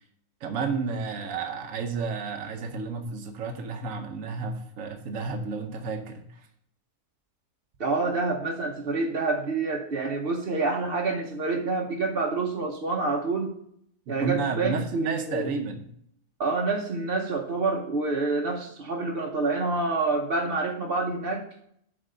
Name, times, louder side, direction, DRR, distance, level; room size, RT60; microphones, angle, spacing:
voice 1, 0.4-6.4 14.1-15.9, right 4 dB, 80° right, 4 dB, 1.2 m, -31 dB
voice 2, 7.8-13.5 14.1-15.5 16.4-21.5, right 3 dB, 50° right, -1 dB, 1.0 m, -27 dB
7.7 x 4.1 x 6.6 m, 0.69 s
omnidirectional pair, 1.4 m